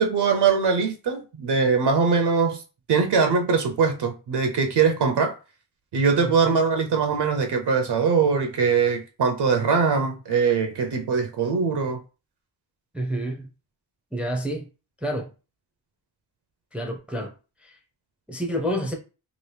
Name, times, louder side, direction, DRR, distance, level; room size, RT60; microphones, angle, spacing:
voice 1, 0.0-2.6 2.9-5.4 5.9-12.0, right 5 dB, 70° right, 0.6 m, -22 dB
voice 2, 6.2-6.6 12.9-13.5 14.1-14.7 15.0-15.3 16.7-17.3 17.6-17.8 18.3-18.9, equal, 5° right, 0.5 m, -29 dB
2.9 x 2.5 x 3.2 m
wide cardioid pair, 130°, 42 cm